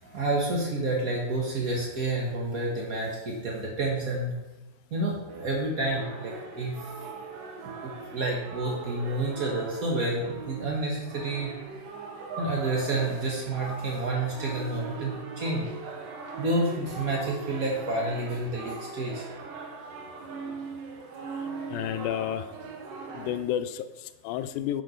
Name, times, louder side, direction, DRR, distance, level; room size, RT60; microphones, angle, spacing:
voice 1, 0.0-4.3 4.9-6.9 7.6-11.5 12.4-15.7 16.4-19.2 20.4-20.5, right 2 dB, 90° right, -2 dB, 0.7 m, -29 dB
sound 1, 5.3-23.4, right 4 dB, 75° right, 2.7 m, -40 dB
voice 2, 21.7-22.5 23.1-24.8, left 11 dB, 85° left, 11 dB, 2.4 m, -31 dB
9.6 x 5.9 x 5.1 m, 1.1 s
omnidirectional pair, 4.0 m